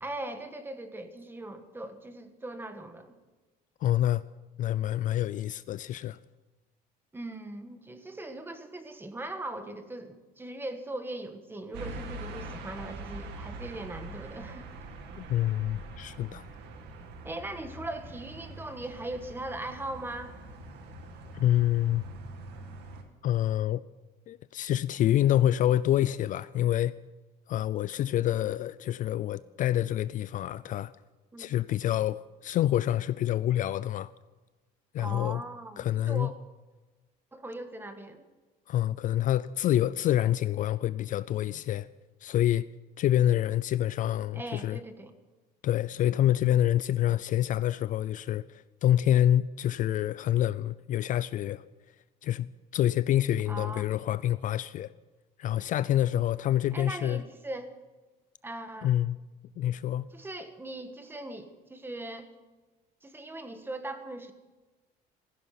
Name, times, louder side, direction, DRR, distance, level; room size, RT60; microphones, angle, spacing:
voice 1, 0.0-3.2 7.1-14.7 17.2-20.3 31.3-31.5 35.0-36.3 37.3-38.2 44.3-45.1 53.5-53.8 56.7-57.7 58.4-58.9 60.1-62.3 63.0-64.3, right 1 dB, 10° right, 1.5 m, -39 dB
voice 2, 3.8-4.2 4.6-6.2 15.2-16.5 21.3-22.0 23.2-23.8 24.3-26.9 27.5-30.9 31.4-34.1 34.9-35.4 35.8-36.3 38.7-41.9 42.2-42.7 43.0-44.8 45.6-51.6 52.2-54.9 55.4-57.2 58.8-59.2 59.6-60.1, left 12 dB, 50° left, 0.4 m, -27 dB
sound 1, 11.7-23.0, right 2 dB, 75° right, 2.2 m, -43 dB
16.0 x 15.5 x 5.8 m
cardioid pair, 145°, 17 cm